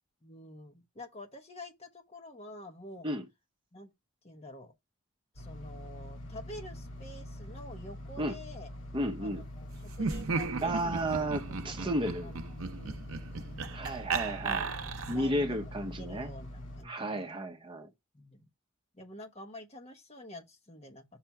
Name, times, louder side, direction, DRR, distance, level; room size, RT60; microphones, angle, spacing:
voice 1, 0.2-3.1 3.7-3.9 4.2-4.7 5.3-8.7 9.2-11.1 11.4-11.8 12.2-13.0 14.5-15.6 15.8-17.3 18.1-18.5 18.9-21.0, left 1 dB, 30° left, 1.0 m, -48 dB
sound 1, 5.4-16.8, left 1 dB, 65° left, 2.1 m, -44 dB
voice 2, 8.9-9.4 10.6-12.3 13.7-14.7 15.1-16.3 16.8-17.9, right 1 dB, 25° right, 0.9 m, -33 dB
Laughter, 9.9-15.3, right 4 dB, 80° right, 0.7 m, -35 dB
5.8 x 3.3 x 5.8 m
head